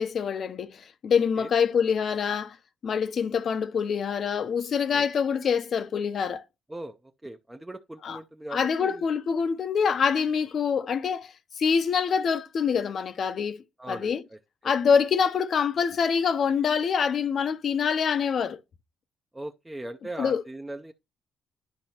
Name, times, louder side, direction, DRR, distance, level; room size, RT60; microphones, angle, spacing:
voice 1, 0.0-2.6 2.8-6.4 8.0-8.2 8.5-14.2 14.6-18.6 20.2-20.4, left 6 dB, 55° left, 0.7 m, -25 dB
voice 2, 6.7-9.1 13.8-14.4 19.3-20.9, right 1 dB, 10° right, 0.5 m, -39 dB
10.5 x 5.2 x 2.9 m
cardioid pair, 90°, 0 cm